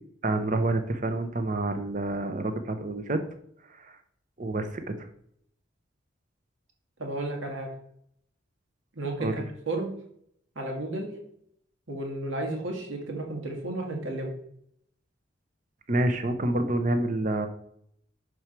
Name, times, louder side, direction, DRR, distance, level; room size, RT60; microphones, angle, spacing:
voice 1, 0.2-3.2 3.8-4.0 4.4-5.1 9.2-9.4 15.9-17.5, right 2 dB, 40° right, 7 dB, 0.8 m, -28 dB
voice 2, 7.0-7.7 9.0-9.9 10.6-11.1 11.9-14.3, right 2 dB, 80° right, 1 dB, 1.9 m, -33 dB
6.6 x 4.7 x 4.4 m, 0.69 s
head